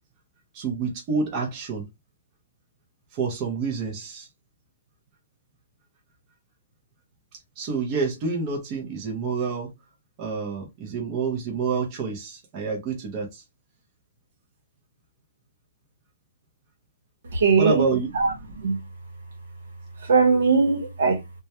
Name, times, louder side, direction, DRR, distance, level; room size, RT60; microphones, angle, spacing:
voice 1, 0.5-1.9 3.1-4.3 7.6-9.7 10.2-13.4 17.6-18.1, right 5 dB, 25° right, 0.6 m, -28 dB
voice 2, 17.3-17.8 18.1-18.9 20.0-21.2, right 4 dB, 75° right, 0.9 m, -20 dB
2.2 x 2.1 x 2.8 m
hypercardioid pair, 175°, 0 cm